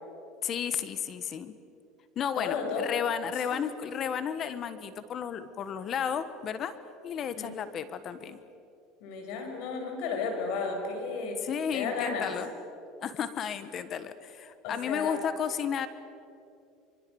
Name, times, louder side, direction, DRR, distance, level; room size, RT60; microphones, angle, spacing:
voice 1, 0.4-1.5 2.1-6.8 7.0-8.4 11.4-12.5 13.0-15.9, left 8 dB, 40° left, 13 dB, 1.4 m, -33 dB
voice 2, 2.4-2.9 3.3-3.6 7.4-7.5 9.0-11.4 11.7-12.3 14.6-15.2, left 5 dB, 70° left, 3 dB, 6.4 m, -33 dB
25.0 x 25.0 x 7.1 m, 2.7 s
supercardioid pair, 115°, 0 cm